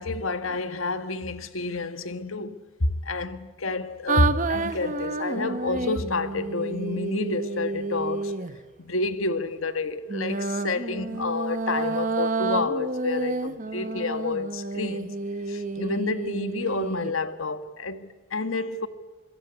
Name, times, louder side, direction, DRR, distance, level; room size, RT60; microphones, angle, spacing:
voice 1, 0.0-2.5 2.8-8.4 8.8-15.1 15.5-18.9, left 3 dB, 90° left, 1.7 m, -29 dB
sound 1, 4.1-8.6 10.1-17.1, right 3 dB, 40° right, 1.0 m, -30 dB
26.5 x 22.0 x 8.3 m
head